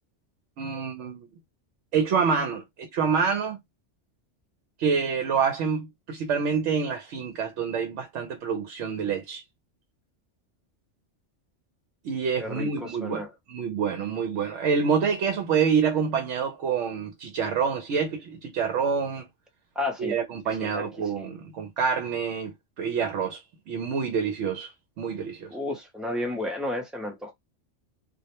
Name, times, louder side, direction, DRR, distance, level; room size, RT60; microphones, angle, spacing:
voice 1, 0.6-1.3 1.9-3.6 4.8-9.4 12.0-19.3 20.0-25.5, right 6 dB, 80° right, 0.9 m, -27 dB
voice 2, 12.4-13.3 19.8-20.1 20.6-20.8 21.2-21.3 25.5-27.3, left 2 dB, ahead, 0.3 m, -32 dB
2.3 x 2.1 x 2.8 m
omnidirectional pair, 1.2 m